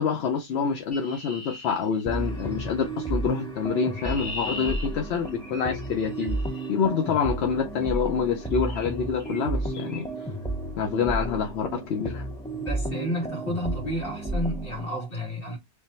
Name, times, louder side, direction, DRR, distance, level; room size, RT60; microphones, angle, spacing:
voice 1, 0.0-6.4 6.7-10.0 10.8-12.3, left 6 dB, 80° left, 0.9 m, -27 dB
Chirp tweet, 0.9-2.5 3.6-6.7 7.8-8.1 8.7-8.9 9.2-9.4 9.7-10.0, left 1 dB, 40° left, 1.7 m, -40 dB
sound 1, 2.1-14.9, right 2 dB, 5° left, 0.5 m, -32 dB
voice 2, 12.5-15.6, equal, 60° left, 2.2 m, -31 dB
3.6 x 2.1 x 4.1 m
omnidirectional pair, 1.1 m